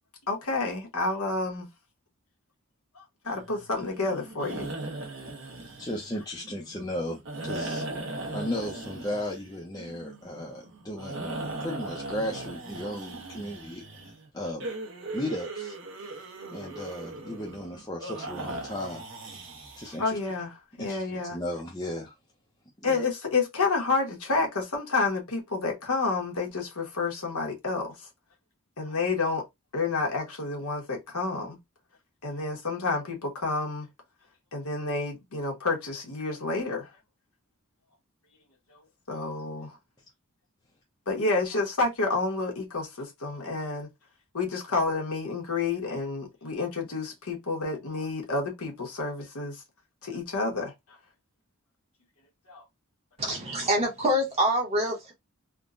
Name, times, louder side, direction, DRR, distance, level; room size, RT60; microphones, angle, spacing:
voice 1, 0.3-1.7 3.0-4.7 20.0-21.4 22.8-27.9 28.8-29.4 29.7-31.6 32.2-33.9 34.5-36.9 39.1-39.7 41.1-43.9 44.3-49.6 50.0-50.7 52.5-52.6, left 3 dB, 85° left, 1.2 m, -29 dB
sound 1, 3.3-20.2, right 2 dB, 60° right, 0.9 m, -39 dB
voice 2, 5.8-7.8 8.3-11.3 11.6-13.8 14.3-14.7 15.1-15.7 16.5-19.0 19.8-20.2 20.8-22.1 22.8-23.0, left 1 dB, 15° left, 0.6 m, -35 dB
voice 3, 53.2-55.1, equal, 30° right, 1.2 m, -26 dB
3.5 x 2.3 x 2.5 m
head